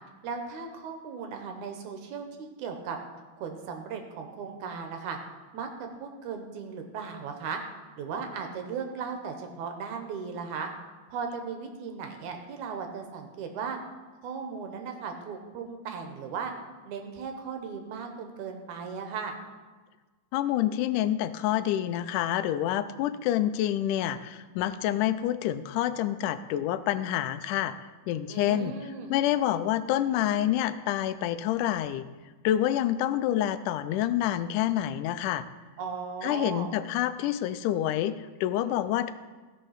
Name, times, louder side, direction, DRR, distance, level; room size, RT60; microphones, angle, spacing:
voice 1, 0.2-3.0 3.4-5.2 5.5-7.6 8.0-10.7 11.1-13.8 14.2-16.5 16.8-19.3 28.3-29.2 35.8-36.7, right 5 dB, 75° right, 4 dB, 2.4 m, -37 dB
voice 2, 20.3-27.7 28.1-28.7 29.1-32.1 32.4-35.4 36.2-39.1, left 12 dB, 85° left, 13 dB, 2.1 m, -27 dB
16.0 x 5.6 x 5.7 m, 1.3 s
omnidirectional pair, 3.6 m